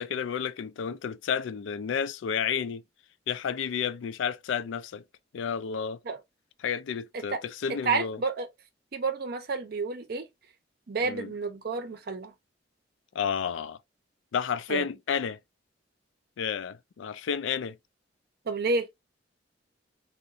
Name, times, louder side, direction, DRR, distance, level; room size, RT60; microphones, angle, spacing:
voice 1, 0.0-2.8 3.3-5.0 5.3-6.0 6.6-8.2 11.0-11.3 13.1-13.8 14.3-15.4 16.4-17.8, left 7 dB, 85° left, 0.3 m, -31 dB
voice 2, 7.8-8.5 8.9-10.3 10.9-12.3 14.7-14.8 18.5-18.9, right 4 dB, 55° right, 0.5 m, -30 dB
3.7 x 2.1 x 2.6 m
head